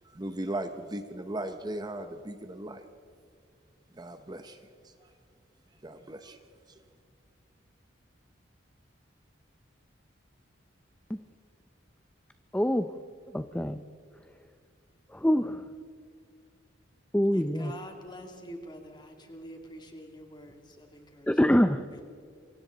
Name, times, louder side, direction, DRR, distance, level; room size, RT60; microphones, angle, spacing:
voice 1, 0.0-2.9 3.9-5.1 5.8-6.4 6.7-6.8, right 1 dB, 20° right, 8 dB, 0.8 m, -38 dB
voice 2, 12.5-12.9 13.3-13.8 15.1-15.6 17.1-17.7 21.3-21.8, equal, 5° left, 9 dB, 0.5 m, -25 dB
voice 3, 17.3-21.3 21.9-22.0, equal, 25° left, 3 dB, 2.8 m, -46 dB
28.0 x 24.5 x 4.0 m, 2.3 s
head